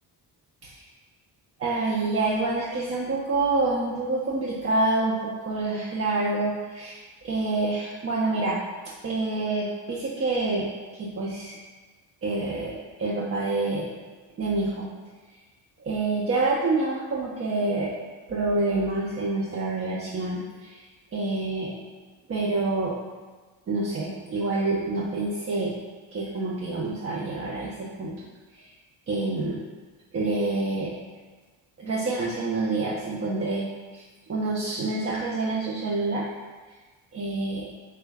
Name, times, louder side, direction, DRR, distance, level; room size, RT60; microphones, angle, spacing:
voice 1, 1.6-8.6 9.0-11.6 12.2-13.9 14.4-14.9 15.8-17.9 18.3-20.8 21.1-21.7 22.3-23.0 23.7-25.7 26.1-28.1 28.5-28.7 29.1-29.6 30.1-30.9 31.8-33.7 33.9-36.3 37.1-37.7, right 2 dB, 35° right, -5 dB, 0.5 m, -27 dB
3.2 x 2.3 x 3.3 m, 1.3 s
cardioid pair, 75°, 43 cm